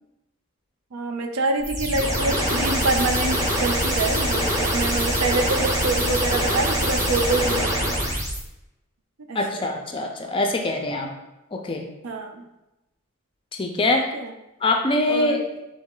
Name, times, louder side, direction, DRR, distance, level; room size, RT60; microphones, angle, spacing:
voice 1, 0.9-7.9 9.3-9.7 12.0-12.4 13.9-14.3 15.1-15.4, right 3 dB, 85° right, 5 dB, 0.5 m, -26 dB
sound 1, 1.6-8.4, equal, 15° right, 0.7 m, -24 dB
voice 2, 9.3-11.1 11.5-11.8 13.6-14.1 14.6-15.4, left 2 dB, 25° left, 3 dB, 0.4 m, -23 dB
4.0 x 3.1 x 3.7 m, 0.95 s
head